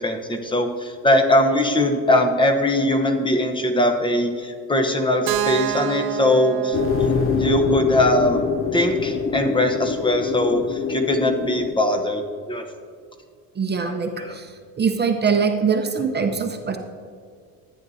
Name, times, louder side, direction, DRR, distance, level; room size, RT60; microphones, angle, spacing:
voice 1, 0.0-8.4 8.7-12.7 13.8-13.9 14.2-14.4, left 1 dB, 10° left, 5 dB, 0.9 m, -21 dB
Keyboard (musical), 5.3-9.2, right 11 dB, 70° right, 0.7 m, -30 dB
sound 1, 6.7-11.7, left 6 dB, 35° left, 0.4 m, -24 dB
voice 2, 13.6-16.8, right 5 dB, 25° right, 4 dB, 0.7 m, -23 dB
13.5 x 9.4 x 2.7 m, 2.1 s
cardioid pair, 110°, 39 cm